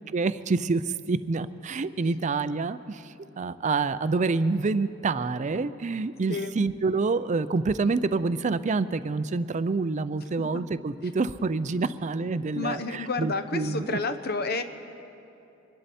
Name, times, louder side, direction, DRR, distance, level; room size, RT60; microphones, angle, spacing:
voice 1, 0.1-14.0, right 3 dB, 40° right, 14 dB, 0.4 m, -27 dB
voice 2, 12.6-14.6, left 3 dB, 55° left, 9 dB, 0.8 m, -30 dB
25.0 x 11.0 x 4.3 m, 2.8 s
head